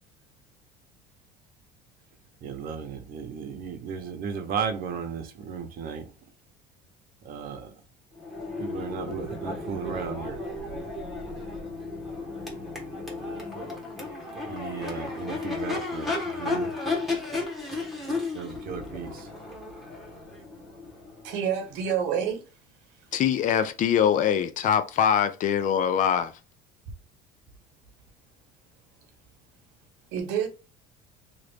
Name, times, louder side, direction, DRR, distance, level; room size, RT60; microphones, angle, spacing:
voice 1, 2.4-6.1 7.2-7.8 8.6-10.4 14.5-16.8 18.3-19.3, right 6 dB, 50° right, 0.8 m, -35 dB
Crowd / Race car auto racing / Accelerating revving vroom, 8.2-22.0, left 3 dB, ahead, 1.2 m, -34 dB
voice 2, 21.2-22.4 30.1-30.5, right 8 dB, 75° right, 1.0 m, -28 dB
voice 3, 23.1-26.3, left 8 dB, 45° left, 0.5 m, -23 dB
3.0 x 2.5 x 3.2 m
cardioid pair, 120°, 19 cm